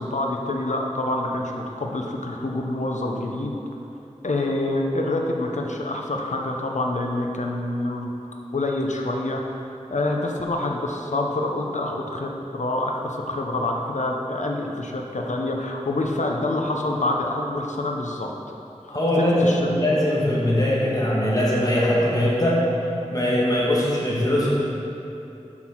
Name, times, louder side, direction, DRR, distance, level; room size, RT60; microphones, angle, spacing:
voice 1, 0.0-3.6 4.2-8.1 8.5-9.4 9.9-18.3 19.2-19.6, left 2 dB, 85° left, 1 dB, 0.7 m, -26 dB
voice 2, 18.9-22.6 23.1-24.5, left 1 dB, 30° left, -6 dB, 1.6 m, -21 dB
6.0 x 5.8 x 4.5 m, 2.8 s
wide cardioid pair, 50°, 12 cm